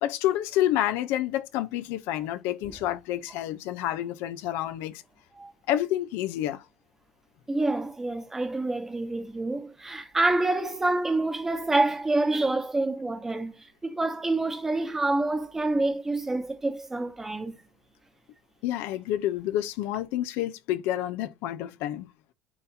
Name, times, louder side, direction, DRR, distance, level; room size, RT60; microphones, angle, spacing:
voice 1, 0.0-5.0 5.7-6.7 18.6-22.1, left 13 dB, 55° left, 0.8 m, -29 dB
voice 2, 7.5-17.6, right 2 dB, 10° right, 1.2 m, -27 dB
10.5 x 4.2 x 2.8 m
cardioid pair, 180°, 5 cm